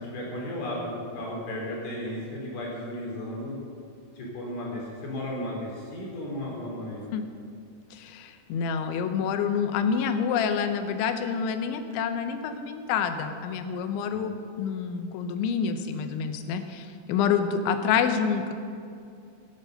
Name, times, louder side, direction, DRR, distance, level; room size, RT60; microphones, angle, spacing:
voice 1, 0.0-3.6 4.1-7.0 14.1-14.2, left 1 dB, 60° left, -3 dB, 5.1 m, -34 dB
voice 2, 7.9-18.5, left 6 dB, 85° left, 8 dB, 3.3 m, -27 dB
14.5 x 11.0 x 6.5 m, 2.4 s
omnidirectional pair, 5.2 m